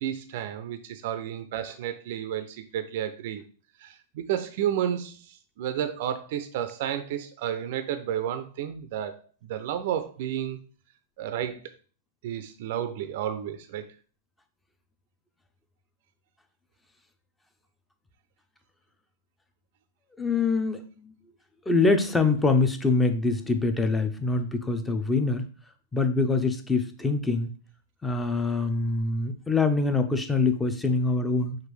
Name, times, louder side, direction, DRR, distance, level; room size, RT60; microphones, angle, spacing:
voice 1, 0.0-3.4 3.8-10.6 11.2-11.6 12.2-13.9, right 10 dB, 55° right, 10 dB, 0.4 m, -31 dB
voice 2, 20.2-21.1 21.7-25.5 25.9-27.5 28.0-31.6, left 3 dB, 10° left, 8 dB, 0.6 m, -24 dB
6.0 x 2.5 x 3.3 m, 0.40 s
hypercardioid pair, 100°, 0 cm